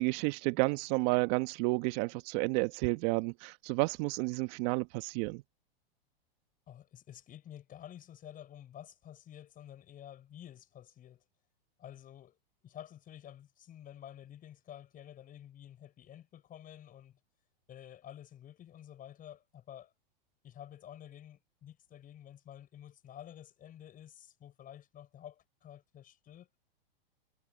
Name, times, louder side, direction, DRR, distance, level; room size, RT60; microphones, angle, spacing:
voice 1, 0.0-5.4, right 26 dB, 45° right, 1.2 m, -31 dB
voice 2, 6.7-11.2 11.8-12.4 12.6-17.2 17.7-19.9 20.4-26.6, left 11 dB, 30° left, 6.2 m, -51 dB
hypercardioid pair, 125°, 30 cm